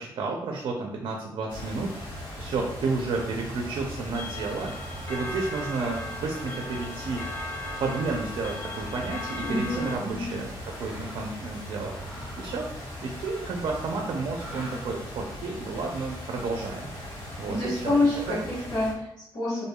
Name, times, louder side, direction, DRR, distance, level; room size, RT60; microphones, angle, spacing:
voice 1, 0.0-1.9 2.4-4.7 5.1-7.2 7.8-10.5 10.8-11.9 12.4-12.7 13.0-18.4, right 3 dB, 65° right, 1 dB, 0.5 m, -31 dB
sound 1, 1.5-18.9, equal, 70° left, 1.4 m, -39 dB
Clock, 4.1-10.0, left 2 dB, 25° left, 0.4 m, -38 dB
voice 2, 9.4-10.3 17.5-19.6, left 2 dB, 50° left, -9 dB, 1.3 m, -27 dB
Mechanisms, 10.6-11.3 11.8-13.7 14.3-15.1, equal, 5° right, 1.4 m, -45 dB
4.5 x 2.6 x 2.2 m, 0.82 s
wide cardioid pair, 155°, 9 cm